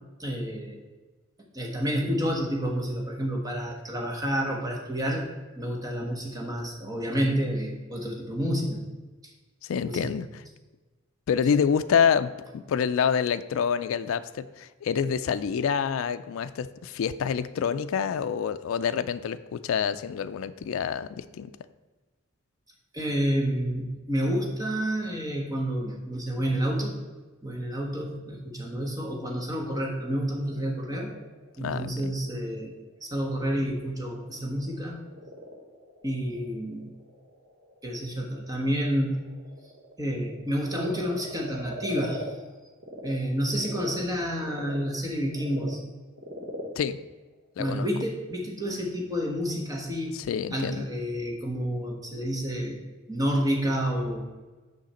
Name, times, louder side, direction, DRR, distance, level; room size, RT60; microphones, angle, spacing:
voice 1, 0.2-0.8 1.5-5.3 5.6-8.8 9.2-9.3 9.8-10.0 22.9-27.0 27.4-31.1 31.6-32.7 33.0-35.0 36.0-36.9 37.8-39.2 40.0-42.3 43.0-45.8 47.6-50.2 50.5-54.2, equal, 15° right, 0 dB, 1.1 m, -29 dB
voice 2, 9.6-10.4 11.3-21.5 31.6-32.1 46.8-47.0 47.6-47.9 50.1-50.9, left 7 dB, 75° left, 11 dB, 0.3 m, -27 dB
Frog, 30.5-43.1 43.5-48.1, equal, 70° right, 1.3 m, -43 dB
6.3 x 5.9 x 4.2 m, 1.2 s
head